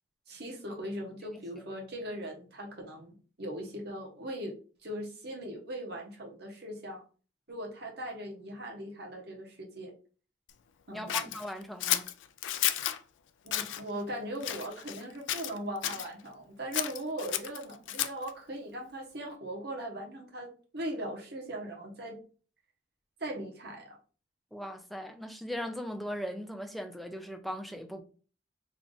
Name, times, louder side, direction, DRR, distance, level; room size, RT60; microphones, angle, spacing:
voice 1, 0.3-4.5 4.8-7.0 7.5-9.9 10.9-11.3 13.4-22.2 23.2-24.0, right 1 dB, 60° right, 1.1 m, -39 dB
voice 2, 10.9-12.1 24.5-28.0, equal, ahead, 0.4 m, -39 dB
Scissors, 11.1-13.0 13.5-13.8 14.4-15.0 15.3-16.1 16.7-18.3, left 12 dB, 85° left, 0.4 m, -32 dB
3.4 x 2.5 x 3.8 m
head